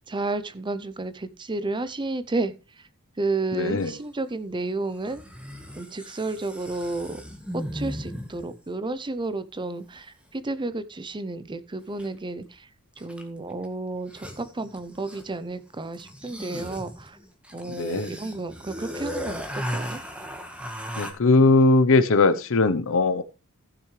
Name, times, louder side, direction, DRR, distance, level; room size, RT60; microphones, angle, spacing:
voice 1, 0.1-2.5 3.2-5.2 5.8-7.2 7.7-12.7 13.0-17.2 17.5-20.0, right 2 dB, 20° right, 0.6 m, -31 dB
voice 2, 3.5-3.9 17.7-18.1 21.0-23.2, left 3 dB, 65° left, 0.8 m, -20 dB
sound 1, 3.8-3.9 5.0-8.6 12.0-12.1 13.0-13.4 13.6-13.7 13.9-15.4 15.9-21.1, equal, 5° right, 1.5 m, -36 dB
15.0 x 6.8 x 3.2 m
head